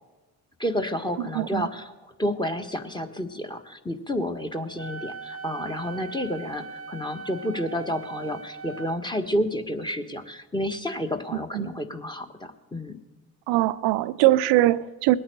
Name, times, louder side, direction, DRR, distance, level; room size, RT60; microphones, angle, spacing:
voice 1, 0.6-1.9 2.2-13.0, equal, 10° left, 6 dB, 1.4 m, -30 dB
voice 2, 1.2-1.7 11.3-11.7 13.5-15.2, right 16 dB, 60° right, 16 dB, 0.7 m, -22 dB
Wind instrument woodwind instrument, 4.8-9.0, right 3 dB, 30° left, 2.3 m, -40 dB
21.0 x 8.8 x 6.5 m, 1.2 s
figure-of-eight pair, 50°, 45 cm